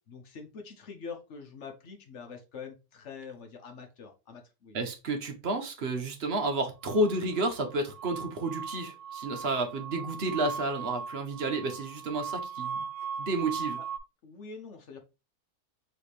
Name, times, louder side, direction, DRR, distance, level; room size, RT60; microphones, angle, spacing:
voice 1, 0.1-4.8 13.8-13.9 14.2-15.0, left 5 dB, 55° left, 1.0 m, -45 dB
voice 2, 4.7-12.9 13.2-13.8, right 2 dB, 50° right, 0.9 m, -31 dB
sound 1, 6.8-14.0, right 6 dB, 80° right, 1.2 m, -38 dB
4.6 x 3.3 x 3.2 m
omnidirectional pair, 1.7 m